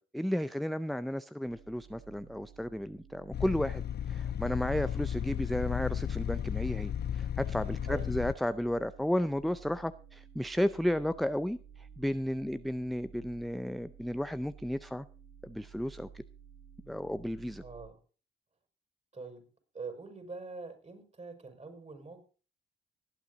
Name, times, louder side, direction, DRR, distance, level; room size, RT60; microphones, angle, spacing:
voice 1, 0.1-15.1 15.4-16.2 16.9-17.6, equal, ahead, 13 dB, 0.5 m, -33 dB
sound 1, 1.5-17.9, right 7 dB, 70° right, 1.4 m, -54 dB
sound 2, 3.3-8.3, left 9 dB, 50° left, 0.5 m, -34 dB
voice 2, 7.8-8.2 17.6-18.0 19.1-19.4 19.7-22.3, right 4 dB, 35° right, 5 dB, 5.3 m, -44 dB
18.5 x 8.3 x 4.0 m, 0.37 s
supercardioid pair, 55°, 21 cm